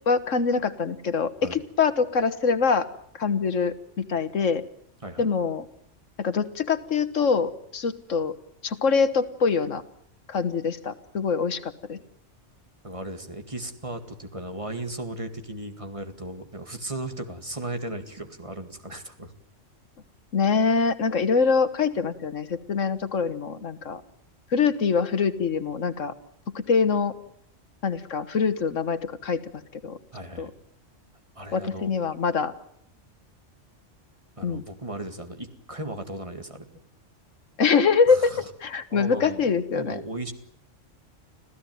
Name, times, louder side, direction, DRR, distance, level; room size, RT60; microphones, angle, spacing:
voice 1, 0.1-2.9 3.1-4.6 5.2-5.7 6.2-8.4 8.6-9.8 10.3-12.0 20.3-24.0 24.5-26.1 26.5-27.1 27.8-29.4 29.7-30.0 30.4-30.5 31.5-32.5 34.4-34.6 37.6-40.0, left 5 dB, 85° left, 12 dB, 1.8 m, -24 dB
voice 2, 12.8-19.3 30.1-30.5 31.4-31.9 34.4-36.7 38.1-38.5 38.9-39.4 39.7-40.3, right 1 dB, 25° right, 7 dB, 2.1 m, -36 dB
26.0 x 15.5 x 9.3 m, 0.70 s
omnidirectional pair, 1.3 m